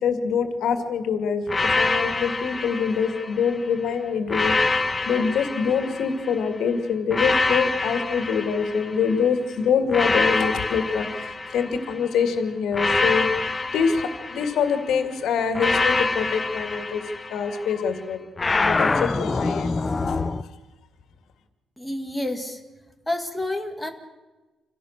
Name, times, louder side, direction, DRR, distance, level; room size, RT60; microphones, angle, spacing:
voice 1, 0.0-4.8 5.1-13.3 13.7-17.0 17.3-18.3 18.7-20.5, left 6 dB, 80° left, 8 dB, 2.3 m, -25 dB
sound 1, 1.5-3.6 4.3-6.4 7.1-9.3 9.9-12.1 12.7-14.9 15.6-17.7 18.4-20.4, left 3 dB, 20° left, 0.6 m, -25 dB
voice 2, 21.8-22.6 23.1-23.9, left 1 dB, 5° left, 4 dB, 1.9 m, -29 dB
27.0 x 17.0 x 6.7 m, 1.2 s
wide cardioid pair, 165°, 0 cm